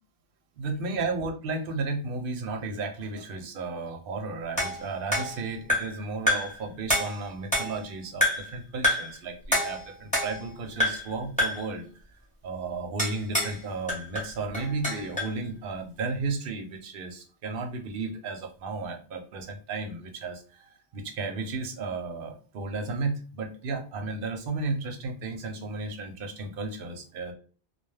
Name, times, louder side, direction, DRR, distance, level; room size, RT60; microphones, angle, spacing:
voice 1, 0.6-11.9 12.4-27.3, right 3 dB, 60° right, 4 dB, 0.7 m, -34 dB
sound 1, 4.6-6.0 6.3-6.6 6.9-7.9 8.2-8.5 8.8-9.2 9.5-10.5 10.8-11.1 11.4-11.7 13.0-13.6 13.9-15.4, left 1 dB, 5° left, 1.0 m, -27 dB
2.2 x 2.2 x 3.2 m, 0.39 s
omnidirectional pair, 1.1 m